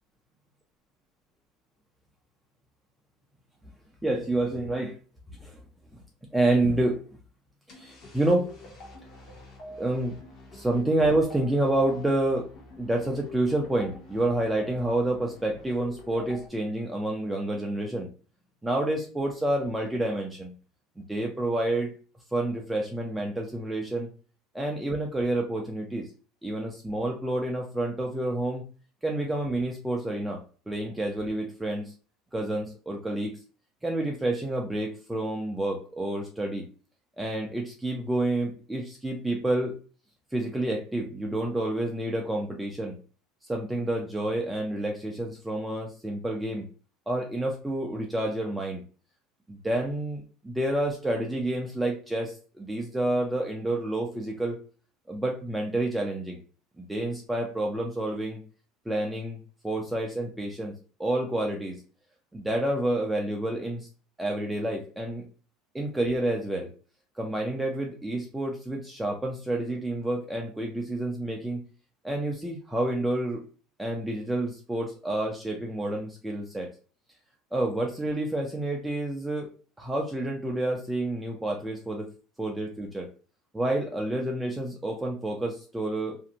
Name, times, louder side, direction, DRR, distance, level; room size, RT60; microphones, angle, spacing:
voice 1, 4.0-5.0 5.4-5.6 6.3-7.0 7.7-8.5 9.8-10.2 10.5-18.1 18.6-20.5 21.0-21.9 22.3-24.1 24.5-26.1 26.4-28.6 29.0-31.9 32.3-33.4 33.8-36.7 37.2-39.8 40.3-43.0 43.5-46.7 47.1-48.8 49.5-54.6 55.1-56.4 56.8-58.4 58.9-60.7 61.0-61.8 62.3-63.9 64.2-65.2 65.7-66.7 67.2-71.6 72.0-73.4 73.8-76.7 77.5-82.1 82.4-83.1 83.5-86.2, right 1 dB, 5° right, -1 dB, 0.4 m, -29 dB
sound 1, 7.7-16.5, left 2 dB, 40° left, 0.7 m, -46 dB
2.5 x 2.1 x 2.7 m, 0.37 s
cardioid pair, 155°, 0 cm